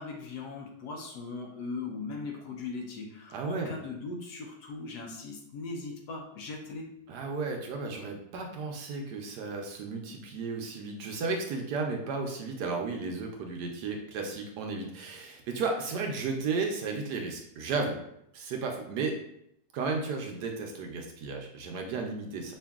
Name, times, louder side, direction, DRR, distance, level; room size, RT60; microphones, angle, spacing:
voice 1, 0.0-6.9, left 3 dB, 70° left, 1 dB, 1.1 m, -39 dB
voice 2, 3.3-3.7 7.1-18.0 18.3-19.2 19.7-22.5, right 4 dB, 75° right, 2 dB, 1.1 m, -34 dB
5.2 x 2.6 x 2.3 m, 0.75 s
omnidirectional pair, 1.9 m